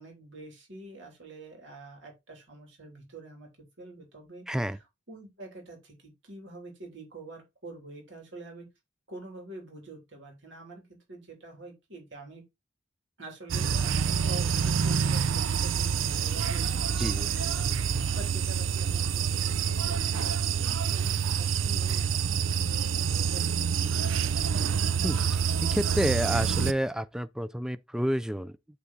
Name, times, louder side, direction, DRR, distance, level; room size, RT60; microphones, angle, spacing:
voice 1, 0.0-3.5 3.8-8.7 9.1-12.4 13.2-24.4, right 2 dB, 65° right, 2.9 m, -47 dB
voice 2, 4.5-4.8 17.0-17.3 25.0-28.6, equal, 5° right, 0.3 m, -30 dB
sound 1, 13.5-26.7, right 7 dB, 85° right, 0.5 m, -27 dB
8.4 x 3.5 x 4.0 m
head